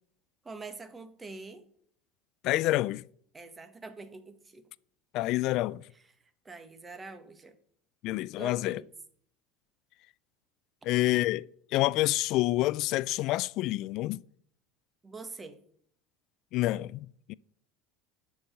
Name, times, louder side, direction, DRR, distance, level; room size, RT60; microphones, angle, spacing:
voice 1, 0.4-1.6 3.3-4.7 5.9-6.0 6.4-7.5 8.4-8.9 15.0-15.6, right 3 dB, 20° right, 1.4 m, -45 dB
voice 2, 2.4-3.0 5.1-5.8 8.0-8.8 10.9-11.5 11.7-14.2 16.5-17.3, left 17 dB, 60° left, 0.3 m, -28 dB
11.0 x 4.7 x 6.6 m
hypercardioid pair, 90°, 0 cm